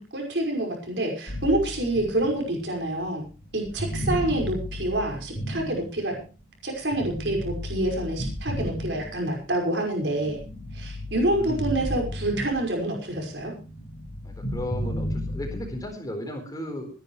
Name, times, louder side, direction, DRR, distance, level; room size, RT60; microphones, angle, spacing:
voice 1, 0.0-3.2 3.5-6.2 6.6-10.4 10.7-13.5, right 1 dB, 70° right, 1 dB, 5.5 m, -27 dB
sound 1, 1.3-6.4 6.9-9.6 10.0-12.9 13.2-15.8, equal, 45° left, 3.6 m, -34 dB
voice 2, 11.3-11.7 14.2-16.9, left 1 dB, 20° left, 4 dB, 4.1 m, -35 dB
25.5 x 10.5 x 3.2 m, 0.35 s
head